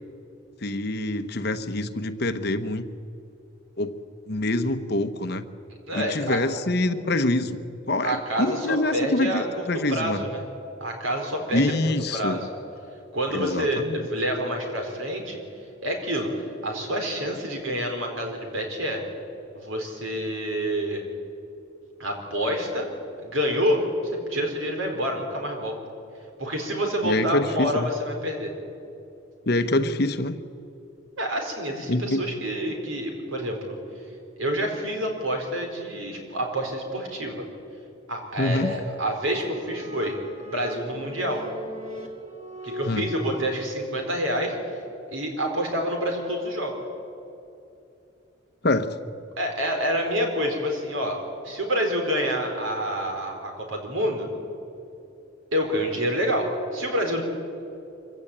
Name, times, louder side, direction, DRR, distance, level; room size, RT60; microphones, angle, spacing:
voice 1, 0.6-2.9 3.8-3.9 4.3-5.4 5.9-7.6 7.9-10.2 11.5-12.4 13.3-14.0 27.0-27.9 29.5-30.4 31.9-32.3 38.4-38.7 42.8-43.1 48.6-49.0, left 2 dB, 55° left, 10 dB, 1.0 m, -25 dB
voice 2, 5.9-6.4 8.0-10.4 10.8-12.5 13.1-15.4 15.8-16.3 16.6-19.0 19.5-21.0 22.0-22.9 23.2-23.8 24.3-25.8 26.4-28.5 31.2-33.8 34.4-37.4 38.1-40.2 40.5-41.4 42.6-44.6 45.1-46.8 49.4-51.2 51.4-54.3 55.5-57.2, equal, 85° right, 3 dB, 4.4 m, -27 dB
sound 1, 38.1-43.4, equal, 35° right, 2.4 m, -40 dB
24.5 x 16.0 x 8.7 m, 2.8 s
head